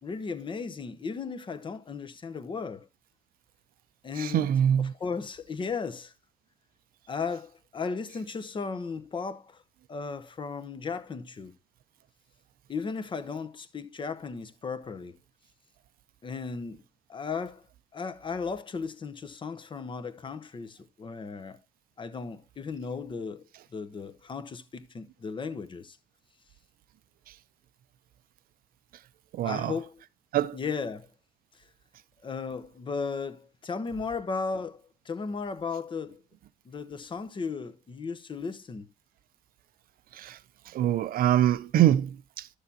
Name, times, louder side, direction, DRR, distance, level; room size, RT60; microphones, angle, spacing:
voice 1, 0.0-2.9 4.0-4.5 5.0-6.1 7.1-9.6 9.9-11.5 12.7-15.2 16.2-16.8 17.1-17.6 17.9-21.6 22.0-26.0 29.4-30.0 30.5-31.1 32.2-36.2 36.6-38.9, left 5 dB, 30° left, 0.8 m, -35 dB
voice 2, 4.2-4.9 29.3-29.7 30.3-30.6 40.1-40.4 40.7-42.6, right 11 dB, 60° right, 0.5 m, -24 dB
11.5 x 6.6 x 2.8 m
cardioid pair, 110°, 17 cm